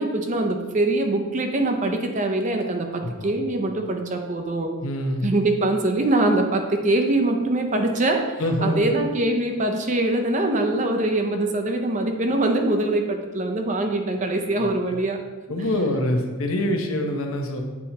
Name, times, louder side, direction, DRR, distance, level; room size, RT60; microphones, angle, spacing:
voice 1, 0.0-4.7 5.2-15.2, right 2 dB, 35° right, 4 dB, 0.5 m, -23 dB
voice 2, 3.0-3.3 4.8-5.3 8.4-8.8 15.5-17.6, left 1 dB, 75° left, 4 dB, 0.8 m, -25 dB
8.4 x 4.3 x 2.8 m, 1.3 s
head